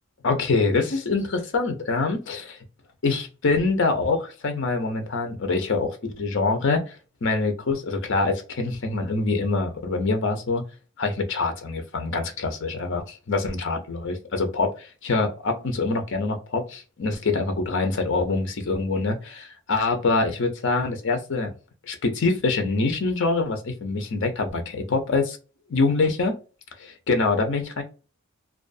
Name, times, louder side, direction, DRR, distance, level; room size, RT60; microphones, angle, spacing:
voice 1, 0.2-2.6 3.0-6.9 7.2-10.6 11.0-21.5 21.9-25.4 25.7-26.4 26.8-27.8, left 3 dB, 60° left, 0.6 m, -25 dB
2.4 x 2.3 x 2.4 m
head